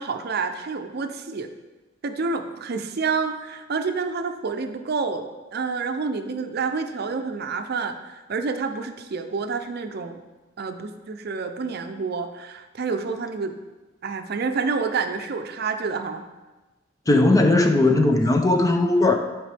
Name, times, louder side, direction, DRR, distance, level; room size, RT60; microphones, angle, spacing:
voice 1, 0.0-1.5 2.0-5.2 5.5-10.2 10.6-13.5 14.0-16.3, right 4 dB, 55° right, 7 dB, 0.5 m, -28 dB
voice 2, 17.1-19.2, left 2 dB, 20° left, 5 dB, 0.6 m, -18 dB
10.5 x 4.8 x 3.4 m, 1.2 s
head